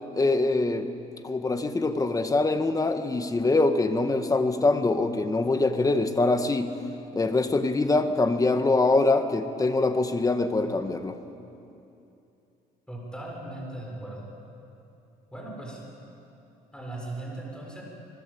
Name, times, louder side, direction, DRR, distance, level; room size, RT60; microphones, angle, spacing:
voice 1, 0.1-0.9 1.2-6.7 7.2-11.2, left 2 dB, 20° left, 8 dB, 1.7 m, -24 dB
voice 2, 12.9-14.3 15.3-15.8 16.7-17.8, right 2 dB, 5° left, -2 dB, 6.6 m, -38 dB
27.0 x 20.5 x 8.7 m, 2.8 s
cardioid pair, 110°, 17 cm